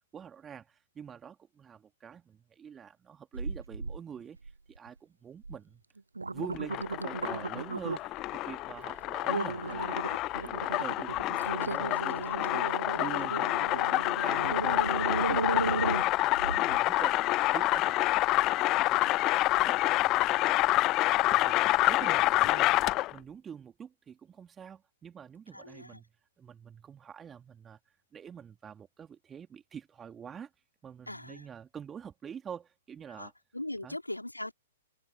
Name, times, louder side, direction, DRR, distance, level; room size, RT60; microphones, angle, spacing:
voice 1, 0.1-4.4 4.7-5.8 6.2-12.7 12.9-19.8 20.1-20.9 21.2-22.7 23.1-26.1 26.4-27.8 28.1-30.5 30.8-33.3 33.8-34.0, right 7 dB, 15° right, 2.7 m, -46 dB
sound 1, 3.3-4.0 4.4-4.9 5.4-5.6 6.0-8.2 8.7-8.9 9.3-16.8 17.3-17.4, right 3 dB, 80° right, 0.9 m, -35 dB
sound 2, 6.5-23.2, left 18 dB, 30° left, 0.6 m, -28 dB
voice 2, 25.5-26.0 31.1-31.5 33.1-34.5, left 1 dB, 90° left, 3.7 m, -40 dB
figure-of-eight pair, 110°, 0 cm